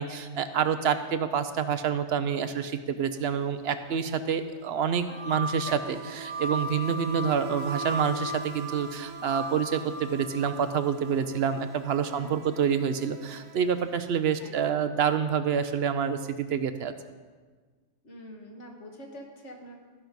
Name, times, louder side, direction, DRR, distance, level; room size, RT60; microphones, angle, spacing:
voice 1, 0.0-16.9, right 7 dB, 65° right, 10 dB, 0.8 m, -27 dB
Insect, 3.0-3.2 3.4-14.4, right 5 dB, 90° right, 1.1 m, -45 dB
sound 1, 4.9-10.9, right 1 dB, 40° left, 1.5 m, -36 dB
voice 2, 14.4-14.7 18.0-19.8, equal, 75° left, 0 dB, 1.9 m, -45 dB
14.5 x 6.0 x 5.2 m, 1.4 s
omnidirectional pair, 1.2 m